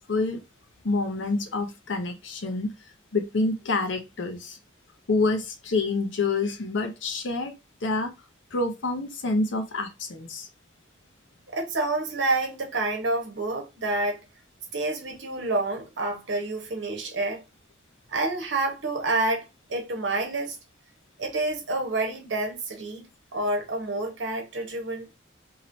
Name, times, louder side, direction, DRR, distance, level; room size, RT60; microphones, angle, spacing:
voice 1, 0.1-0.4 0.8-2.7 3.1-4.6 5.1-7.5 7.8-8.1 8.5-10.5, left 3 dB, 85° left, 0.7 m, -27 dB
voice 2, 11.5-14.2 14.7-17.4 18.1-20.6 21.2-23.0 23.3-25.1, right 2 dB, 75° right, 1.0 m, -28 dB
3.0 x 2.8 x 2.6 m
head